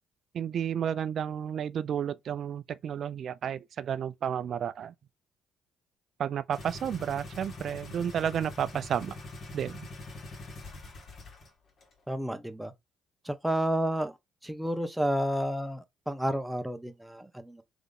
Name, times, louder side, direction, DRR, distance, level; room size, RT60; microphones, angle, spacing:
voice 1, 0.3-4.9 6.2-9.2 9.5-9.9, right 8 dB, 60° right, 0.4 m, -32 dB
sound 1, 6.5-11.5 11.8-11.9, left 2 dB, 55° left, 1.9 m, -44 dB
voice 2, 12.1-12.7 13.2-14.2 14.4-17.6, right 1 dB, 5° right, 0.9 m, -31 dB
3.6 x 3.5 x 3.6 m
hypercardioid pair, 55°, 0 cm